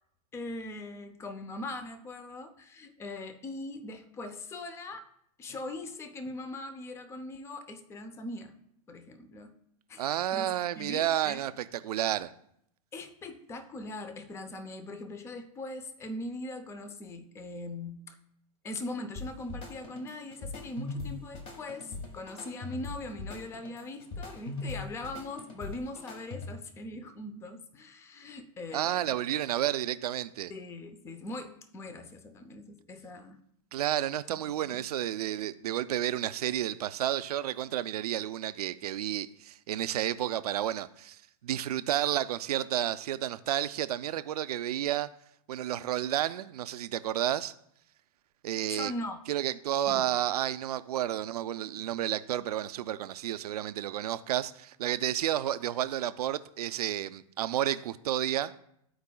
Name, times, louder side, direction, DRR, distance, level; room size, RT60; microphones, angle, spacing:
voice 1, 0.3-5.0 5.4-8.5 8.9-9.6 9.9-11.4 12.9-18.2 18.6-29.2 30.5-33.4 34.3-34.8 48.7-49.2 49.9-50.1, left 2 dB, 15° left, 0.5 m, -41 dB
voice 2, 10.0-12.3 28.7-30.5 33.7-41.2 41.4-45.1 45.5-47.5 48.4-48.9 49.3-58.5, right 12 dB, 80° right, 0.5 m, -31 dB
sound 1, 19.2-26.8, left 3 dB, 30° left, 1.3 m, -41 dB
13.5 x 4.7 x 2.2 m
hypercardioid pair, 135°, 19 cm